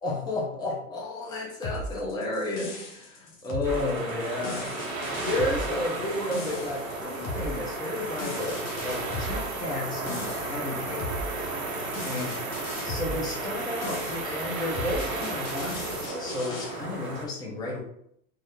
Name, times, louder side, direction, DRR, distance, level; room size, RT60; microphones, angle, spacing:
voice 1, 0.0-4.8 5.2-11.2 12.0-12.4 12.8-17.8, left 2 dB, 10° left, -3 dB, 0.6 m, -32 dB
sound 1, 1.6-16.7, left 1 dB, 35° left, 0.9 m, -37 dB
sound 2, 3.6-17.3, right 2 dB, 85° right, 1.1 m, -34 dB
sound 3, 4.1-16.1, right 5 dB, 40° right, 0.7 m, -41 dB
3.7 x 2.0 x 3.2 m, 0.70 s
hypercardioid pair, 100°, 41 cm